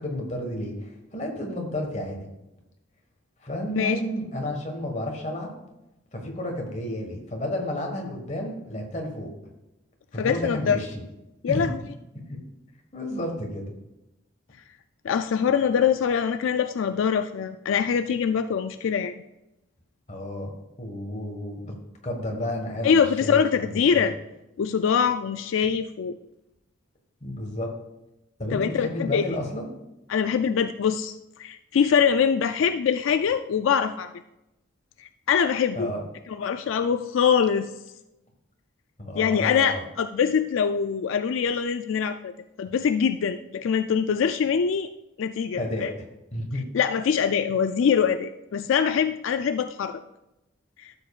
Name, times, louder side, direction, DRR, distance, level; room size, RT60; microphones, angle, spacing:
voice 1, 0.0-2.3 3.4-5.5 6.1-9.3 10.1-10.9 11.5-11.7 12.1-12.4 12.9-13.7 20.1-21.7 22.0-24.1 27.2-27.7 28.4-29.7 35.7-36.0 39.0-39.8 45.6-46.1 46.3-46.6, left 1 dB, 35° left, 2 dB, 1.5 m, -31 dB
voice 2, 10.2-10.8 11.4-11.8 15.0-19.1 22.8-24.1 24.6-26.2 28.5-29.2 30.1-34.1 35.0-35.9 36.3-37.7 39.2-42.3 42.6-44.9 45.2-45.9 46.7-50.0 50.8-50.9, left 7 dB, 80° left, 9 dB, 0.3 m, -23 dB
13.0 x 7.2 x 2.4 m, 0.93 s
head